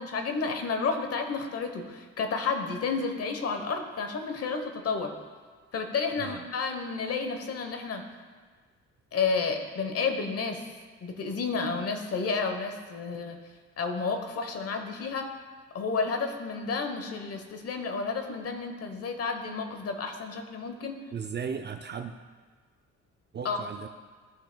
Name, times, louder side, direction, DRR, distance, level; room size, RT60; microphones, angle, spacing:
voice 1, 0.0-5.1 5.7-8.0 9.1-10.6 11.0-13.4 13.8-15.3 15.7-21.0 23.4-23.6, left 4 dB, 50° left, 5 dB, 1.0 m, -31 dB
voice 2, 21.1-22.1 23.3-23.9, right 6 dB, 35° right, 6 dB, 0.4 m, -36 dB
14.0 x 5.8 x 2.2 m, 1.5 s
cardioid pair, 90°, 30 cm